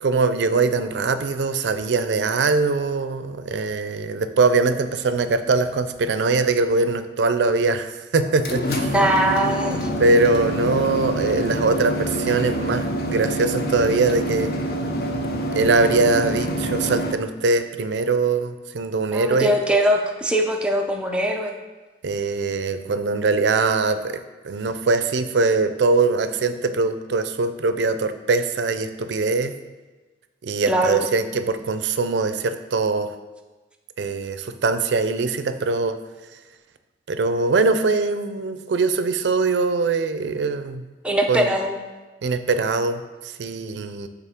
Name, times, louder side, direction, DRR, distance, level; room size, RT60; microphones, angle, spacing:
voice 1, 0.0-8.9 10.0-14.5 15.5-19.5 22.0-29.5 30.4-33.1 34.0-35.9 37.1-40.8 41.3-41.5 42.2-44.1, right 3 dB, 75° right, 10 dB, 0.4 m, -22 dB
sound 1, 8.2-17.1, equal, 55° left, 0.5 m, -26 dB
voice 2, 8.9-9.9 19.1-21.5 30.7-31.1 41.0-41.8, right 1 dB, 5° right, 2 dB, 0.5 m, -21 dB
8.1 x 3.8 x 3.5 m, 1.2 s
head